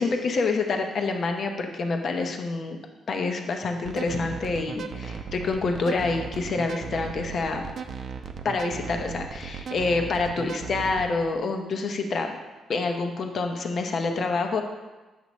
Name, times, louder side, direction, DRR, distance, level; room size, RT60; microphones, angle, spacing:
voice 1, 0.0-2.8 3.1-7.6 8.4-12.4 12.7-14.6, left 3 dB, 50° left, 4 dB, 0.8 m, -27 dB
sound 1, 3.8-11.1, right 6 dB, 55° right, 0.6 m, -36 dB
8.2 x 6.8 x 3.1 m, 1.2 s
cardioid pair, 110°, 0 cm